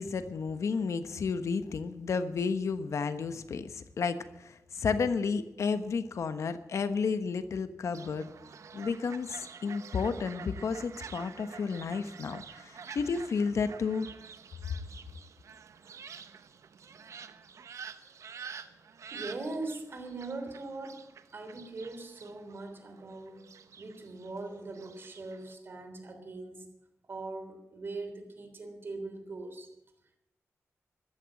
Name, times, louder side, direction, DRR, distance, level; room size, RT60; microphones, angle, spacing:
voice 1, 0.0-8.3 8.7-14.1, left 5 dB, 70° left, 11 dB, 1.1 m, -32 dB
Fowl, 7.9-25.6, right 6 dB, 80° right, 1.1 m, -49 dB
voice 2, 19.1-21.0 21.3-26.7 27.0-29.7, right 3 dB, 45° right, 6 dB, 3.4 m, -41 dB
14.5 x 12.5 x 7.8 m, 0.88 s
wide cardioid pair, 135°, 5 cm